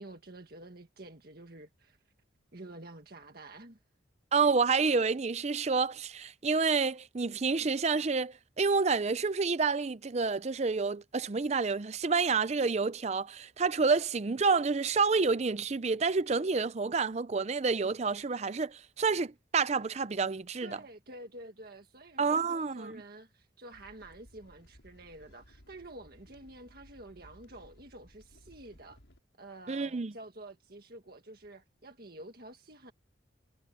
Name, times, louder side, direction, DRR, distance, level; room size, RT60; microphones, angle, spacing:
voice 1, 0.0-2.0 2.5-3.8 20.6-29.0 29.4-32.9, right 1 dB, 50° right, 1.8 m, -49 dB
voice 2, 4.3-20.8 22.2-22.9 29.7-30.1, right 4 dB, 35° right, 0.5 m, -29 dB
sound 1, 23.7-29.2, equal, 85° left, 6.4 m, -59 dB
head